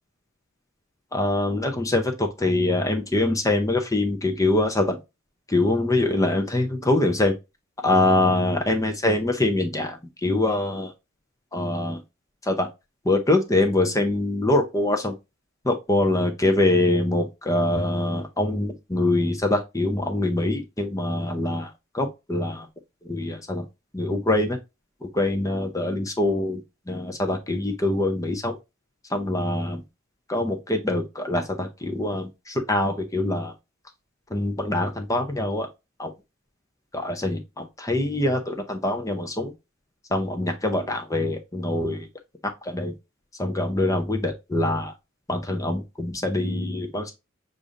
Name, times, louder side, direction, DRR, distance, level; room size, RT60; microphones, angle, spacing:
voice 1, 1.1-5.0 5.5-7.3 7.8-10.9 11.5-12.0 12.4-12.7 13.0-15.2 15.6-22.7 23.1-23.7 23.9-24.6 25.0-28.6 29.1-29.8 30.3-33.5 34.3-35.7 36.0-36.1 36.9-39.5 40.1-42.1 42.6-43.0 43.4-44.9 45.3-47.1, left 2 dB, 15° left, 0.6 m, -24 dB
6.8 x 2.5 x 2.5 m
head